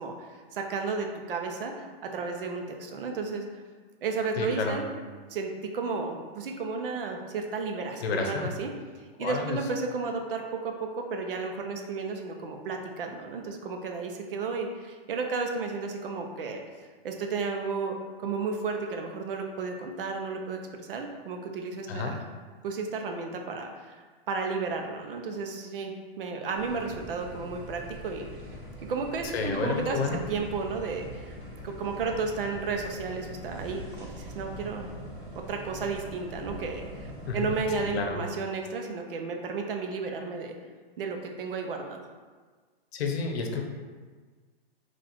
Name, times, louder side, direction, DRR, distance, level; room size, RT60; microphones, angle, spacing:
voice 1, 0.0-3.6 4.0-4.9 5.3-8.7 9.2-16.6 17.0-18.0 18.2-22.2 22.6-28.3 28.8-31.4 31.6-34.9 35.4-40.6 41.0-42.0, right 4 dB, 60° right, 3 dB, 0.7 m, -33 dB
voice 2, 4.4-4.8 8.0-8.5 9.2-9.6 21.9-22.1 29.2-30.2 37.3-37.5 37.8-38.2 42.9-43.6, left 4 dB, 90° left, 3 dB, 0.8 m, -30 dB
sound 1, 26.5-38.0, equal, 15° right, 0.5 m, -42 dB
4.1 x 2.5 x 4.4 m, 1.5 s
hypercardioid pair, 170°, 30 cm